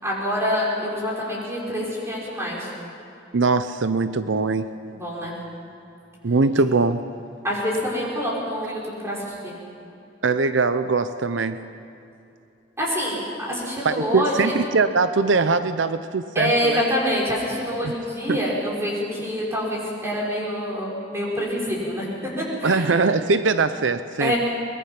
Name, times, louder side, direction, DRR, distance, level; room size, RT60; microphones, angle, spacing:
voice 1, 0.0-2.7 4.9-5.3 7.4-9.5 12.8-14.6 16.3-22.1 22.4-23.0 24.2-24.4, equal, 15° right, -5 dB, 5.8 m, -26 dB
voice 2, 3.3-4.7 6.2-7.0 10.2-11.6 13.8-16.8 17.8-17.9 18.3-18.4 22.6-24.3, right 4 dB, 90° right, 11 dB, 0.7 m, -21 dB
23.0 x 21.5 x 5.9 m, 2.7 s
head